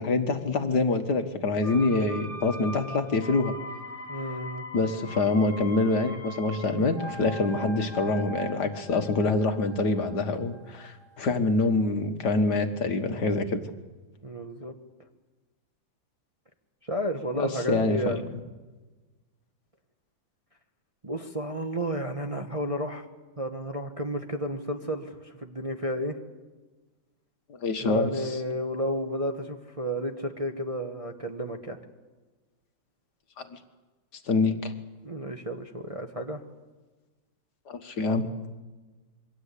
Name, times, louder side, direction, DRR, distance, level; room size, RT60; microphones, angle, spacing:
voice 1, 0.0-3.5 4.7-13.6 17.3-18.4 27.5-28.4 33.4-33.6 34.3-34.7 37.7-38.3, left 3 dB, 60° left, 7 dB, 2.0 m, -26 dB
sound 1, 1.6-11.4 11.6-11.7, right 1 dB, 25° left, 4.3 m, -41 dB
voice 2, 4.1-4.6 14.2-14.7 16.9-18.2 21.0-23.0 23.4-26.2 27.8-31.8 35.0-36.4, equal, 20° right, 4 dB, 1.1 m, -32 dB
27.0 x 23.5 x 8.4 m, 1.2 s
omnidirectional pair, 2.1 m